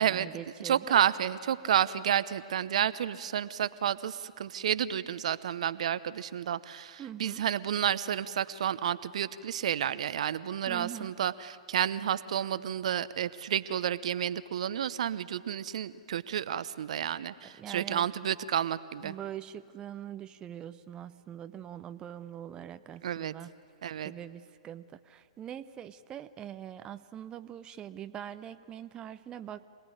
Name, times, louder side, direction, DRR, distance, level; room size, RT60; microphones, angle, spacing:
voice 1, 0.0-1.0 7.0-7.4 10.7-11.2 17.6-18.1 19.0-23.5 24.0-29.6, right 10 dB, 20° right, 11 dB, 0.6 m, -43 dB
voice 2, 0.6-19.1 23.0-23.3 23.8-24.1, right 9 dB, 60° right, 15 dB, 0.8 m, -30 dB
26.5 x 18.5 x 9.8 m, 2.2 s
hypercardioid pair, 120°, 4 cm